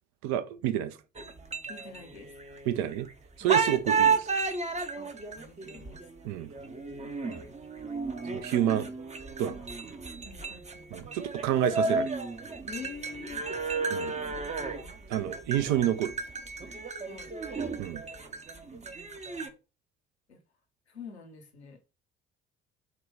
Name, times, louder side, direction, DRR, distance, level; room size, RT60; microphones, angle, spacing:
voice 1, 0.2-1.0 2.7-3.1 3.4-4.3 6.2-6.5 8.3-8.9 9.4-9.6 10.9-12.1 13.9-14.1 15.1-16.1 17.8-18.0, right 11 dB, 60° right, 0.6 m, -29 dB
sound 1, 1.2-3.1 3.5-19.5, right 4 dB, 20° right, 0.7 m, -33 dB
voice 2, 1.7-2.3 3.4-3.6 4.9-6.0 10.3-11.2 12.7-13.4 17.1-17.3 20.3-20.4 20.9-21.8, left 5 dB, 85° left, 0.8 m, -46 dB
5.8 x 2.2 x 3.4 m
figure-of-eight pair, 45°, 32 cm